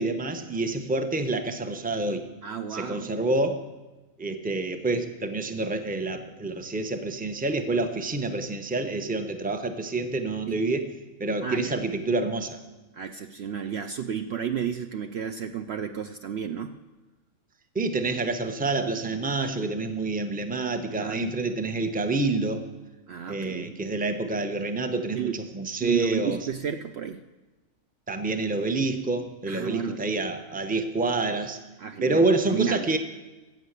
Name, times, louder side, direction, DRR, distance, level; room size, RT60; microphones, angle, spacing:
voice 1, 0.0-2.2 2.7-3.7 4.2-10.8 11.2-12.6 17.7-22.6 23.3-26.4 28.1-31.6 32.0-33.0, right 3 dB, 10° right, 7 dB, 0.7 m, -27 dB
voice 2, 2.4-3.2 10.5-10.6 11.4-11.8 12.9-16.8 21.0-21.2 23.1-23.8 25.1-25.4 25.8-27.2 29.5-30.1 31.8-32.9, right 8 dB, 60° right, 8 dB, 0.7 m, -32 dB
15.0 x 7.3 x 8.1 m, 1.2 s
omnidirectional pair, 1.4 m